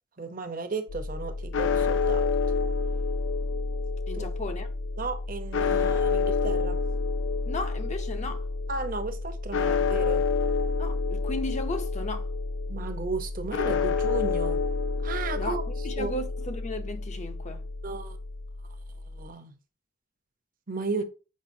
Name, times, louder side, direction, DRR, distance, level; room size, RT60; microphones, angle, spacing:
voice 1, 0.2-2.3 4.1-4.3 5.0-6.8 8.7-10.2 12.7-14.6 15.0-15.6 16.0-16.1 17.8-18.2 19.1-19.5 20.7-21.0, right 3 dB, 50° right, 0.8 m, -34 dB
sound 1, 0.9-19.3, left 4 dB, 80° left, 0.5 m, -29 dB
voice 2, 4.1-4.7 7.5-8.4 10.8-12.3 15.4-15.6 15.8-17.6, left 2 dB, 40° left, 0.6 m, -35 dB
7.4 x 4.9 x 2.7 m
head